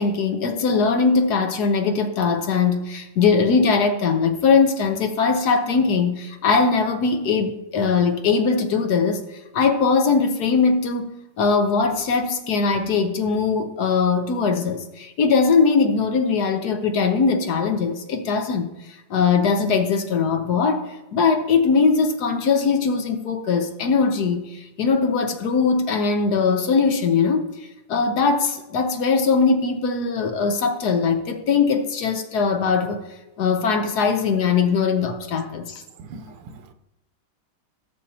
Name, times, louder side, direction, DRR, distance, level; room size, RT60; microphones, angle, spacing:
voice 1, 0.0-9.2 9.5-18.7 19.1-27.5 27.9-33.0 33.4-35.8, left 5 dB, 60° left, 1.2 m, -20 dB
voice 2, 36.0-36.7, right 4 dB, 90° right, 1.6 m, -41 dB
17.0 x 6.7 x 2.8 m
omnidirectional pair, 2.4 m